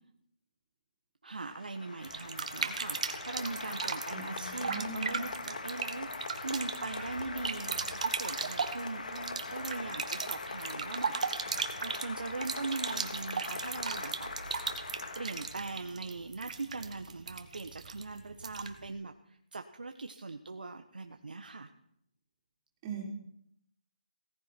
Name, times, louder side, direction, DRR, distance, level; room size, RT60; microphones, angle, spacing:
voice 1, 1.2-14.3 15.2-21.7, right 3 dB, 90° right, 6 dB, 1.3 m, -41 dB
Applause, 1.3-15.8, left 3 dB, 65° left, 2.5 m, -42 dB
sound 1, 2.0-18.9, right 5 dB, 55° right, 1.7 m, -38 dB
voice 2, 4.1-5.0 22.8-23.0, right 4 dB, 20° right, -1 dB, 4.1 m, -39 dB
18.0 x 14.5 x 4.5 m, 0.73 s
hypercardioid pair, 165°, 5 cm